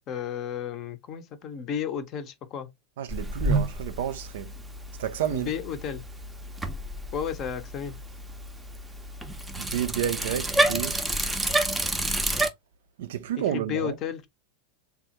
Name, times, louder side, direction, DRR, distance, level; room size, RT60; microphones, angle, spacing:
voice 1, 0.1-2.7 5.3-6.1 7.1-8.0 13.5-14.3, left 8 dB, 40° left, 0.6 m, -33 dB
voice 2, 3.0-4.5 5.0-5.5 9.6-11.0 13.0-13.9, right 10 dB, 60° right, 0.4 m, -30 dB
Bicycle, 3.1-12.5, right 1 dB, 10° right, 0.5 m, -30 dB
3.5 x 2.0 x 2.8 m
figure-of-eight pair, 85°, 0 cm